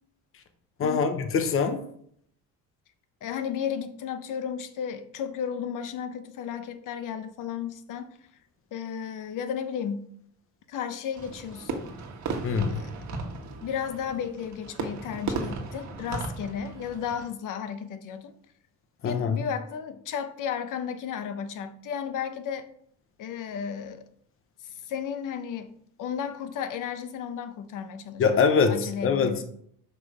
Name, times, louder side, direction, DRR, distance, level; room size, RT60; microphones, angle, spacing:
voice 1, 0.8-1.8 12.4-12.8 19.0-19.4 28.2-29.4, left 5 dB, 40° left, 7 dB, 0.9 m, -24 dB
voice 2, 3.2-8.2 8.7-10.1 10.7-11.9 12.7-12.9 13.6-18.3 19.0-22.7 23.2-24.0 24.6-29.4, left 8 dB, 65° left, 10 dB, 0.9 m, -34 dB
Fireworks, 11.1-17.3, right 4 dB, 55° right, 1.4 m, -36 dB
6.0 x 5.5 x 4.8 m, 0.67 s
cardioid pair, 140°, 33 cm